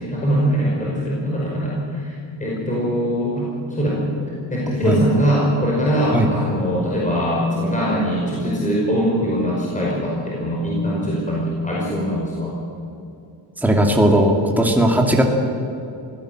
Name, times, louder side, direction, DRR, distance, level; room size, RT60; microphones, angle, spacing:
voice 1, 0.0-2.1 2.4-4.0 4.5-12.5, equal, 15° left, -4 dB, 5.4 m, -22 dB
voice 2, 13.6-15.2, right 1 dB, 5° right, 1 dB, 2.5 m, -17 dB
24.5 x 17.0 x 7.8 m, 2.7 s
cardioid pair, 140°, 47 cm